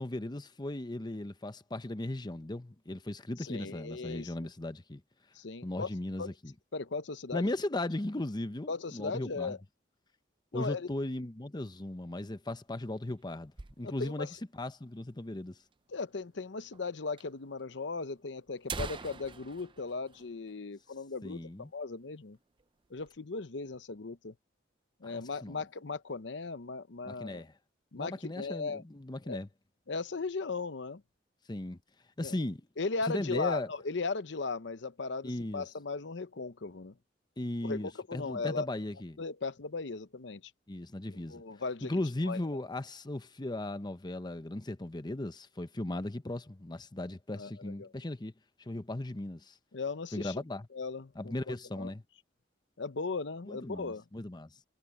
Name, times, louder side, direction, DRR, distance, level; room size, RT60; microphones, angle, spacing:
voice 1, 0.0-5.0 5.6-6.5 7.3-9.6 10.5-14.3 14.5-15.6 21.2-21.7 25.0-25.6 27.0-27.5 27.9-29.5 31.5-31.8 32.2-32.6 33.1-33.7 35.2-35.6 37.4-39.2 40.7-41.4 41.8-48.3 48.6-49.6 50.1-50.7 51.2-52.0 53.5-54.6, left 1 dB, 25° left, 0.8 m, -37 dB
voice 2, 3.4-4.3 5.3-5.9 6.2-6.3 6.7-7.5 8.7-9.6 10.5-10.9 13.8-14.3 15.9-22.4 22.9-24.3 25.0-27.4 27.9-28.8 29.3-29.4 29.9-31.0 32.2-32.4 32.8-37.0 37.6-38.7 39.2-40.5 41.1-41.9 42.3-42.4 47.4-47.9 49.7-50.3 50.7-51.9 52.8-54.0, left 4 dB, 70° left, 0.8 m, -37 dB
sound 1, 12.5-14.3 14.6-14.7 14.9-15.0 15.7-15.8 16.7-16.9 17.2-17.3 18.0-18.1 18.5-21.1 21.4-21.5 21.9-22.2 22.6-23.2, right 4 dB, 25° right, 0.6 m, -44 dB
head